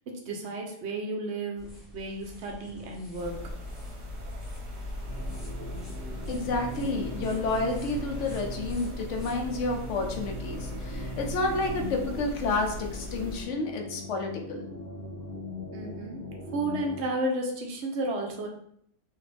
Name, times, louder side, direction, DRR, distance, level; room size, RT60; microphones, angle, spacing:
voice 1, 0.1-3.5 15.7-16.2 16.5-18.5, right 1 dB, 70° right, 1 dB, 0.8 m, -33 dB
sound 1, 1.5-9.4, equal, ahead, 0.9 m, -46 dB
sound 2, 3.2-13.4, left 1 dB, 85° right, 1.2 m, -39 dB
sound 3, 5.0-17.0, equal, 35° right, 1.2 m, -40 dB
voice 2, 6.3-14.7, left 3 dB, 75° left, 3 dB, 1.0 m, -30 dB
3.3 x 2.4 x 3.3 m, 0.68 s
omnidirectional pair, 1.3 m